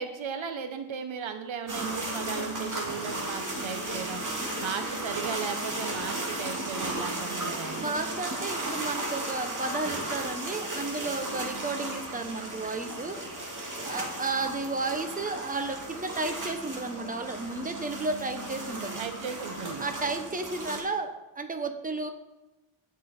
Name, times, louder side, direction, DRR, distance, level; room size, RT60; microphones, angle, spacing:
voice 1, 0.0-4.2 4.6-8.0 19.0-19.8, right 6 dB, 75° right, 8 dB, 1.0 m, -36 dB
sound 1, 1.7-20.8, right 2 dB, 40° right, 2.4 m, -35 dB
voice 2, 7.6-13.2 13.8-19.0 19.8-22.1, right 3 dB, 15° right, 6 dB, 1.0 m, -33 dB
16.5 x 6.2 x 4.4 m, 1.0 s
wide cardioid pair, 125°, 47 cm